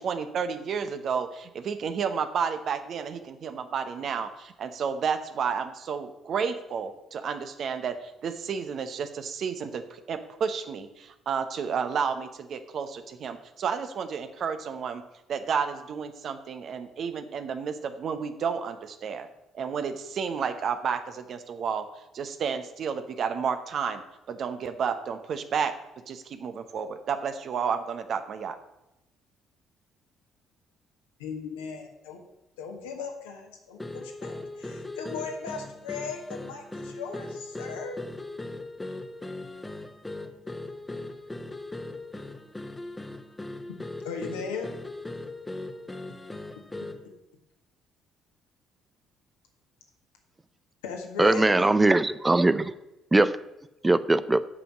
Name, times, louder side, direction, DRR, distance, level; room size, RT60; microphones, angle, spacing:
voice 1, 0.0-15.0 15.3-19.3 19.5-21.9 22.1-24.0 24.3-25.7 26.1-28.6, right 6 dB, 55° right, 9 dB, 1.0 m, -31 dB
voice 2, 31.2-32.2 32.6-38.0 44.0-44.7 50.8-51.7, left 5 dB, 85° left, 2 dB, 1.6 m, -37 dB
sound 1, 33.8-47.1, left 2 dB, 15° left, 1.1 m, -39 dB
voice 3, 51.2-52.7 53.1-53.3 53.8-54.4, right 2 dB, 20° right, 14 dB, 0.6 m, -21 dB
8.4 x 5.4 x 7.4 m, 0.95 s
hypercardioid pair, 50°, 0 cm